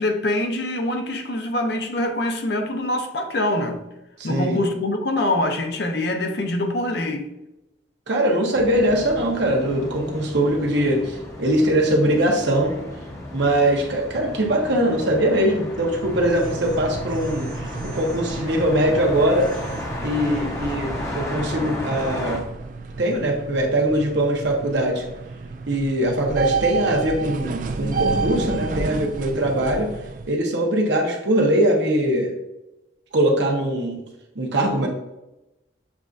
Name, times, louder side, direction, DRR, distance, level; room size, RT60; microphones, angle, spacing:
voice 1, 0.0-3.8 4.2-7.3 10.1-10.2, left 1 dB, 65° left, 0.6 m, -24 dB
voice 2, 4.2-4.6 8.1-12.7 13.3-19.5 20.0-22.4 23.0-25.0 25.7-29.9 30.3-32.3 33.1-34.0 34.3-34.9, right 1 dB, 75° right, 0.9 m, -21 dB
sound 1, 8.5-22.4, left 1 dB, 15° left, 0.7 m, -34 dB
sound 2, 15.9-30.3, right 4 dB, 45° right, 0.3 m, -31 dB
7.1 x 2.6 x 2.4 m
head